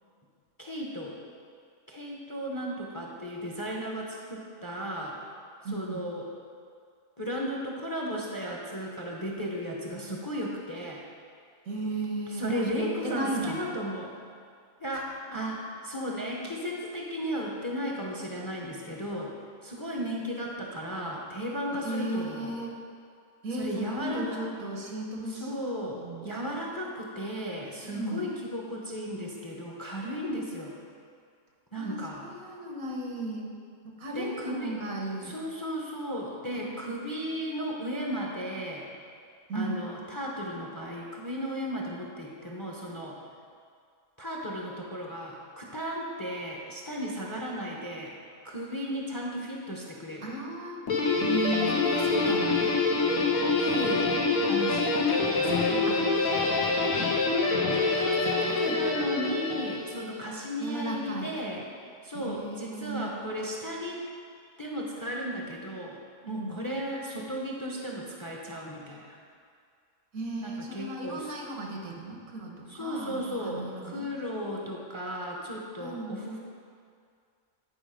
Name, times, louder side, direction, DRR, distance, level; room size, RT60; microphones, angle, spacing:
voice 1, 0.6-1.2 1.9-5.2 5.7-6.3 7.2-11.0 12.4-14.2 14.8-19.3 19.6-22.5 23.6-24.4 25.4-30.8 31.7-32.2 34.1-34.7 35.3-38.8 39.5-43.2 44.2-48.1 48.4-50.3 53.6-54.2 54.5-56.1 57.7-61.7 62.0-64.0 64.6-69.2 70.4-71.3 72.7-76.4, equal, 20° left, -2 dB, 0.7 m, -35 dB
voice 2, 5.6-6.1 11.7-13.6 14.9-15.0 21.8-22.8 23.4-25.5 25.8-26.3 27.8-28.3 31.8-33.5 34.0-35.4 36.7-36.8 39.5-39.8 50.2-50.8 51.2-52.7 55.9-57.2 57.9-58.8 60.6-61.3 62.1-63.2 66.4-66.6 70.1-74.1 75.8-76.2, right 1 dB, 85° right, 0 dB, 1.6 m, -35 dB
Guitar, 50.9-60.2, left 3 dB, 85° left, 1.4 m, -26 dB
9.1 x 5.0 x 5.0 m, 2.3 s
omnidirectional pair, 1.4 m